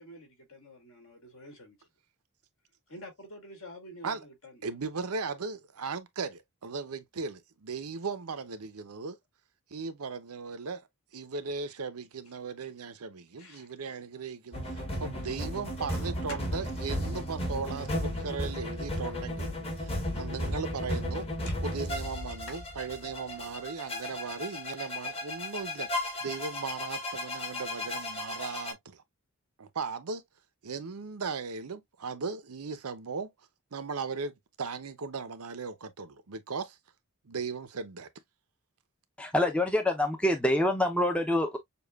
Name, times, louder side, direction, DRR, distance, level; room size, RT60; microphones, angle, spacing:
voice 1, 0.0-1.9 2.9-4.6 13.4-13.7 16.1-16.4 21.5-21.6 22.5-22.6 23.0-23.1, left 1 dB, 65° left, 2.3 m, -47 dB
voice 2, 4.6-9.2 9.7-10.9 11.1-19.5 19.8-21.3 21.6-29.0 29.6-30.2 30.6-33.3 33.7-36.8 37.2-38.1, right 4 dB, 85° right, 0.7 m, -37 dB
sound 1, 14.5-28.7, left 1 dB, 25° left, 1.2 m, -35 dB
voice 3, 39.2-41.6, left 1 dB, 5° left, 0.6 m, -26 dB
6.9 x 2.3 x 2.3 m
head